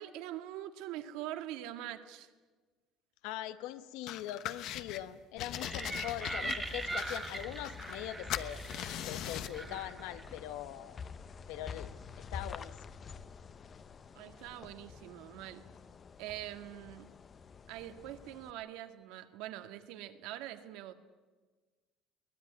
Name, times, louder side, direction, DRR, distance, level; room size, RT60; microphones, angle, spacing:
voice 1, 0.0-2.3 14.2-15.7 16.2-17.1 17.7-20.9, right 13 dB, 75° right, 1.8 m, -44 dB
voice 2, 3.2-8.6 9.0-11.0 11.5-12.7, left 13 dB, 85° left, 1.2 m, -42 dB
sound 1, 4.1-5.0 5.4-8.0 8.3-9.6, left 11 dB, 50° left, 1.0 m, -41 dB
sound 2, 5.4-18.5, left 6 dB, 25° left, 0.7 m, -49 dB
sound 3, 5.5-10.4, right 2 dB, 10° right, 1.6 m, -41 dB
23.5 x 19.0 x 9.6 m
cardioid pair, 175°, 0 cm